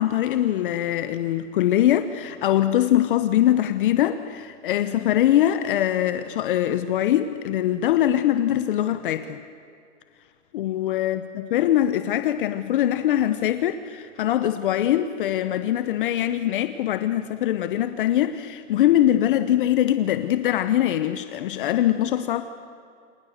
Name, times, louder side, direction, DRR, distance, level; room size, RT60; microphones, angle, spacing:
voice 1, 0.0-9.4 10.5-22.4, left 12 dB, 45° left, 1.1 m, -22 dB
29.5 x 26.5 x 6.7 m
hypercardioid pair, 160°, 37 cm